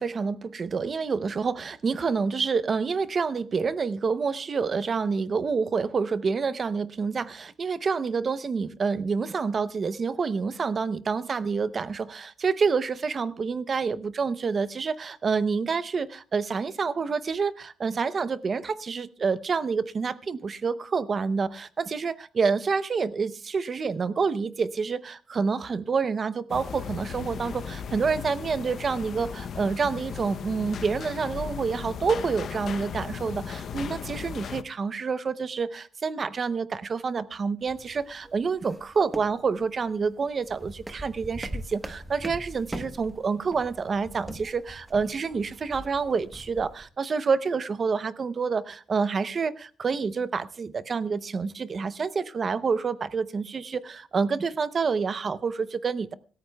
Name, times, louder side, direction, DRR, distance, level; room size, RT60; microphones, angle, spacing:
voice 1, 0.0-56.1, right 5 dB, 30° right, 15 dB, 0.6 m, -28 dB
sound 1, 26.5-34.6, left 7 dB, 50° left, 0.7 m, -36 dB
sound 2, 37.6-46.8, right 1 dB, 10° right, 1.1 m, -42 dB
25.5 x 13.5 x 2.3 m, 0.40 s
cardioid pair, 165°, 0 cm